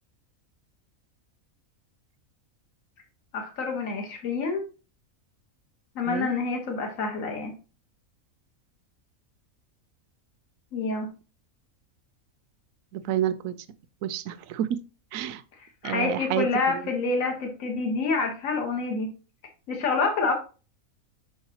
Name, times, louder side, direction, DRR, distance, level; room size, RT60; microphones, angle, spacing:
voice 1, 3.3-4.7 6.0-7.5 10.7-11.1 15.8-19.1 19.7-20.3, left 4 dB, 65° left, 2 dB, 1.6 m, -27 dB
voice 2, 12.9-13.6 14.0-14.7 15.1-15.4 15.8-16.8, right 10 dB, 75° right, 13 dB, 0.9 m, -29 dB
6.2 x 5.6 x 2.8 m, 0.34 s
omnidirectional pair, 1.5 m